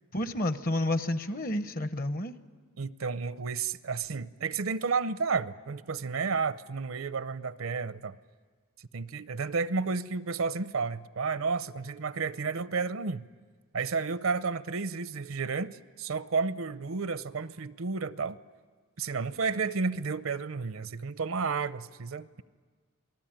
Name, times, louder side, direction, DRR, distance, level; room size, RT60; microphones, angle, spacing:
voice 1, 0.1-2.3, left 1 dB, 45° left, 12 dB, 0.9 m, -30 dB
voice 2, 2.8-8.2 8.9-13.3 13.7-18.4 19.0-22.4, right 4 dB, 70° right, 15 dB, 0.7 m, -32 dB
27.5 x 19.0 x 8.9 m, 1.5 s
head